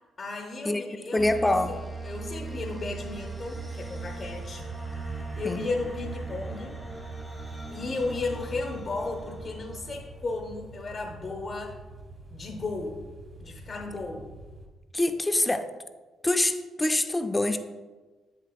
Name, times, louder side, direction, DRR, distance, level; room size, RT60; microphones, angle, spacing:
voice 1, 0.2-1.8 2.0-4.7 5.3-6.8 7.7-11.8 12.3-13.0 13.4-14.3, left 3 dB, 40° left, 0 dB, 0.8 m, -34 dB
voice 2, 1.1-1.7 5.4-5.6 14.9-15.6 16.2-17.6, left 2 dB, 15° left, 8 dB, 0.4 m, -25 dB
sound 1, 1.2-10.6, right 3 dB, 5° right, 1.2 m, -39 dB
sound 2, 2.2-14.7, right 2 dB, 35° right, 1.3 m, -47 dB
7.4 x 6.6 x 2.3 m, 1.3 s
cardioid pair, 90°, 0 cm